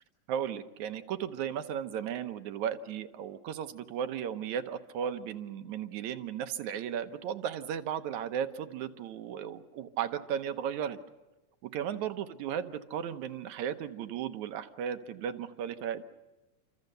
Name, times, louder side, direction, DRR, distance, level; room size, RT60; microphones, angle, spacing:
voice 1, 0.3-11.0 11.6-16.0, right 9 dB, 80° right, 9 dB, 2.3 m, -35 dB
28.5 x 25.5 x 6.7 m, 1.1 s
omnidirectional pair, 3.3 m